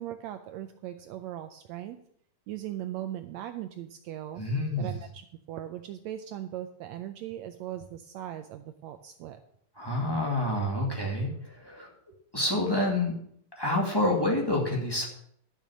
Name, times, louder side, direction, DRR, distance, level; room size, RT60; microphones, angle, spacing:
voice 1, 0.0-2.0 2.5-4.4 4.8-9.4, right 12 dB, 85° right, 8 dB, 1.5 m, -39 dB
voice 2, 4.4-5.0 9.8-11.9 12.3-13.1 13.6-15.1, left 1 dB, 10° left, -1 dB, 1.3 m, -28 dB
12.5 x 6.6 x 6.3 m, 0.68 s
omnidirectional pair, 3.8 m